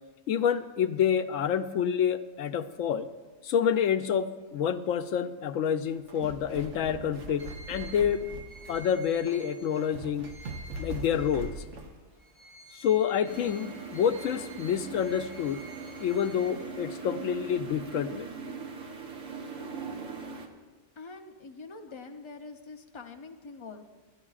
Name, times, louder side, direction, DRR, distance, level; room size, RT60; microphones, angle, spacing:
voice 1, 0.3-3.1 3.4-8.3 8.7-10.3 10.8-11.6 12.7-15.6 16.0-18.3, left 8 dB, 90° left, 11 dB, 1.0 m, -28 dB
sound 1, 5.9-12.0, right 2 dB, 70° right, 1.3 m, -42 dB
sound 2, 7.4-11.8 12.2-17.1, right 2 dB, 45° left, 4.2 m, -51 dB
sound 3, 13.2-20.5, right 5 dB, 85° right, 1.5 m, -41 dB
voice 2, 21.0-23.8, left 4 dB, 30° left, 5 dB, 0.6 m, -45 dB
25.5 x 10.5 x 2.4 m, 1.3 s
omnidirectional pair, 1.3 m